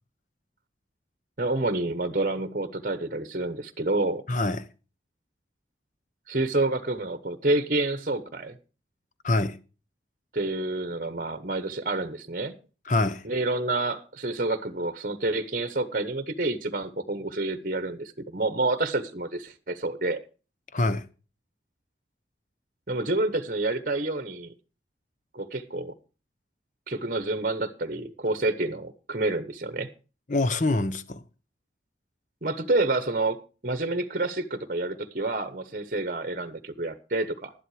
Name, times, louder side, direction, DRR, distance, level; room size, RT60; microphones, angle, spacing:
voice 1, 1.4-4.2 6.3-8.6 10.3-12.5 13.2-20.2 22.9-24.5 25.3-25.9 26.9-29.9 32.4-37.5, right 2 dB, 45° right, 1.1 m, -28 dB
voice 2, 4.3-4.7 9.2-9.6 12.9-13.2 20.7-21.1 30.3-31.2, left 2 dB, 45° left, 0.9 m, -25 dB
12.0 x 11.0 x 4.8 m
head